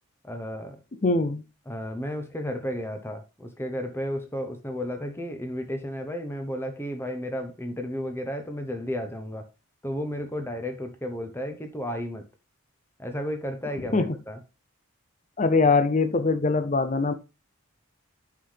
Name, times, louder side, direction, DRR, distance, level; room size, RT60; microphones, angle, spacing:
voice 1, 0.2-0.8 1.7-9.5 9.8-12.2 13.0-14.4, equal, 10° left, 0.9 m, -33 dB
voice 2, 1.0-1.4 13.8-14.2 15.4-17.1, left 3 dB, 35° left, 0.6 m, -22 dB
8.2 x 5.7 x 3.3 m
head